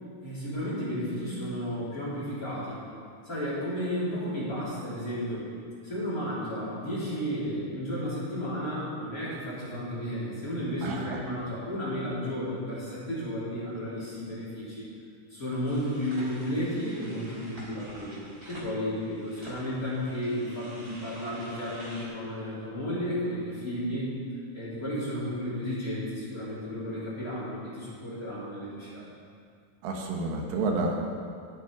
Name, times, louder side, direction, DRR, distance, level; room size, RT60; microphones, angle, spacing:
voice 1, 0.2-2.8 3.2-5.5 5.8-14.9 15.3-18.2 18.5-24.1 24.5-29.1, equal, 25° left, -9 dB, 3.5 m, -33 dB
voice 2, 10.8-11.2 29.8-31.1, right 3 dB, 90° right, 0 dB, 3.4 m, -30 dB
sound 1, 15.6-22.1, right 1 dB, 20° right, 2.8 m, -48 dB
18.5 x 7.3 x 4.8 m, 2.3 s
omnidirectional pair, 4.5 m